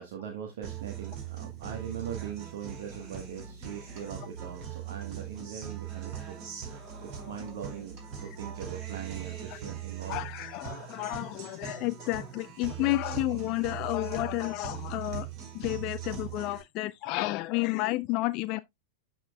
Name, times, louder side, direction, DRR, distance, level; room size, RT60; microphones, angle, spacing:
voice 1, 0.0-10.3, right 8 dB, 60° right, 1.3 m, -41 dB
Guitar, 0.6-16.6, right 9 dB, 40° right, 4.6 m, -40 dB
voice 2, 10.1-15.3 15.5-18.6, left 19 dB, 45° left, 0.4 m, -31 dB
12.0 x 4.3 x 2.3 m
figure-of-eight pair, 90°, 0 cm